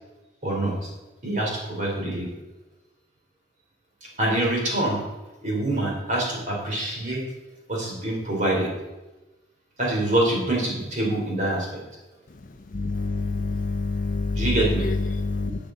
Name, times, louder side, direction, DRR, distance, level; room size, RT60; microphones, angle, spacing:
voice 1, 0.4-0.7 1.2-2.3 4.2-5.0 5.4-7.2 7.7-8.7 9.8-11.7 14.3-14.8, right 1 dB, 45° right, -3 dB, 3.4 m, -25 dB
voice 2, 12.7-14.4 15.1-15.5, left 3 dB, 45° left, 7 dB, 0.5 m, -27 dB
11.5 x 7.8 x 3.9 m, 1.1 s
head